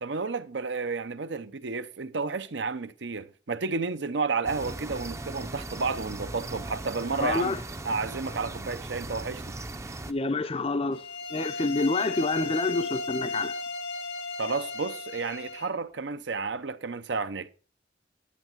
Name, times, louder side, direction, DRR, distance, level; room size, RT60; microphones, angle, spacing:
voice 1, 0.0-7.5 7.8-9.6 14.4-17.5, right 4 dB, 70° right, 0.8 m, -31 dB
sound 1, 4.4-10.1, right 2 dB, 15° right, 0.6 m, -38 dB
voice 2, 7.2-7.6 10.1-11.0 11.3-13.6, left 3 dB, 30° left, 0.6 m, -28 dB
sound 2, 10.9-15.7, left 3 dB, 80° left, 1.3 m, -35 dB
10.0 x 9.0 x 4.7 m
head